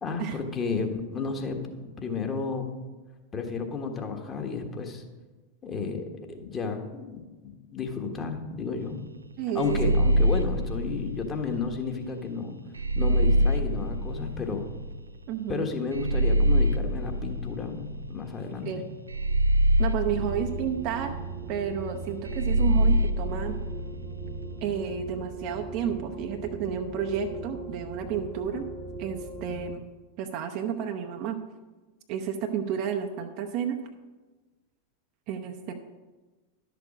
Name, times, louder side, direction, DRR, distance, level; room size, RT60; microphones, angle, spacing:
voice 1, 0.0-2.7 3.3-5.0 5.6-9.0 9.5-12.6 13.0-14.7 15.5-18.8, left 4 dB, 25° left, 4 dB, 1.4 m, -32 dB
voice 2, 9.4-9.9 15.3-15.7 18.6-18.8 19.8-21.2 21.5-23.6 24.6-28.7 29.0-29.8 30.2-31.4 32.1-33.8 35.3-35.7, right 8 dB, 45° right, 4 dB, 0.7 m, -31 dB
sound 1, 9.6-11.8 12.8-14.9 15.9-18.3 19.1-21.3 22.3-24.4, equal, 80° right, 0.4 m, -25 dB
sound 2, 20.0-29.8, right 4 dB, 25° right, 1.0 m, -39 dB
11.5 x 6.7 x 5.1 m, 1.2 s
figure-of-eight pair, 90°, 0 cm